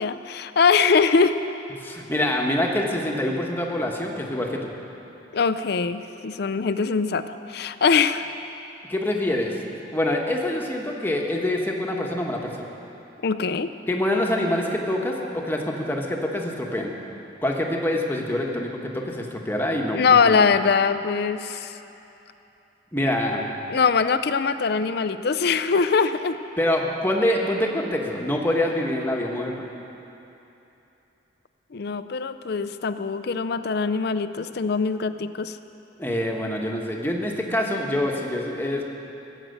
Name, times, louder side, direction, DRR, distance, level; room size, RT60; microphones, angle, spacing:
voice 1, 0.0-1.4 5.3-8.3 13.2-13.7 19.9-21.8 23.7-26.4 31.7-35.6, left 5 dB, 55° left, 12 dB, 0.5 m, -22 dB
voice 2, 1.8-4.7 8.9-9.6 9.9-12.5 13.9-16.9 17.4-20.4 22.9-23.5 26.6-29.7 36.0-38.9, left 1 dB, 10° left, 0 dB, 1.2 m, -25 dB
16.5 x 7.6 x 7.9 m, 3.0 s
head